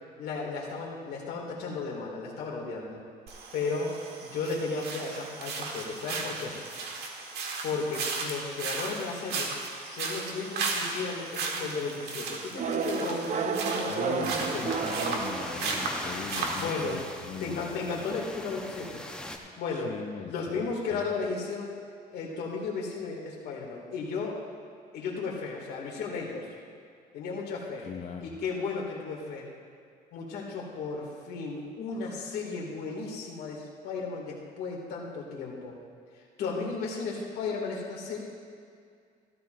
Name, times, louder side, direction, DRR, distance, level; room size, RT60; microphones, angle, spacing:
voice 1, 0.2-3.0 3.5-3.9 4.2-6.6 7.6-9.5 9.8-14.8 16.6-17.0 17.4-19.0 19.6-19.9 20.3-21.8 22.1-24.4 24.9-26.5 27.1-27.9 28.2-29.5 30.1-35.8 36.4-38.2, left 4 dB, 75° left, -2 dB, 2.4 m, -34 dB
sound 1, 3.3-17.0, right 4 dB, 70° right, 1.6 m, -35 dB
sound 2, 12.6-16.1, right 6 dB, 45° right, 0.8 m, -32 dB
voice 2, 13.9-17.8 19.7-21.1 27.8-28.4, left 7 dB, 40° left, 2 dB, 0.7 m, -41 dB
sound 3, 14.4-19.4, left 1 dB, 5° left, 0.9 m, -40 dB
15.5 x 13.5 x 2.6 m, 2.3 s
cardioid pair, 110°, 17 cm